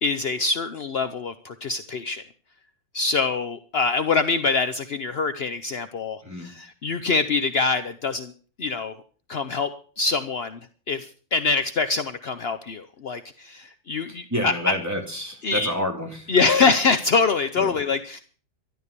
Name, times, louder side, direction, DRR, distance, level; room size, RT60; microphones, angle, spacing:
voice 1, 0.0-2.2 2.9-8.3 8.6-8.9 9.3-9.7 10.0-10.6 10.9-14.5 15.4-15.7 16.3-18.2, left 4 dB, 65° left, 10 dB, 0.6 m, -24 dB
voice 2, 14.1-16.3 17.6-17.7, left 1 dB, 10° right, 1 dB, 2.8 m, -29 dB
13.0 x 11.5 x 6.8 m, 0.42 s
omnidirectional pair, 2.1 m